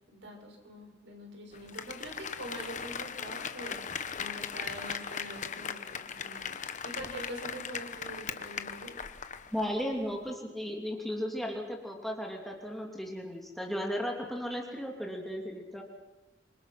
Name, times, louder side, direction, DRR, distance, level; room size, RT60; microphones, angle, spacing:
voice 1, 0.1-9.0, right 1 dB, 70° right, 2 dB, 6.4 m, -45 dB
Applause, 1.5-9.7 10.0-10.1, left 7 dB, 40° left, 1.1 m, -39 dB
voice 2, 9.5-15.8, equal, ahead, 0 dB, 2.9 m, -35 dB
27.5 x 25.0 x 6.0 m, 1.1 s
head